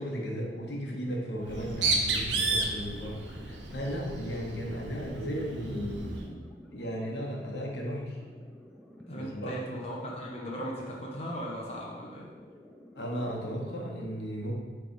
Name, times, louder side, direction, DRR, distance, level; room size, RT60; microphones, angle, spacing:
voice 1, 0.0-6.4 6.7-8.2 9.1-9.5 12.9-14.5, equal, 70° left, -1 dB, 1.2 m, -35 dB
sound 1, 0.7-13.7, left 1 dB, 5° left, 0.6 m, -52 dB
Bird, 1.4-6.3, right 3 dB, 85° right, 0.8 m, -32 dB
voice 2, 9.1-12.3, equal, 35° left, -4 dB, 0.8 m, -38 dB
8.1 x 3.4 x 4.0 m, 1.4 s
head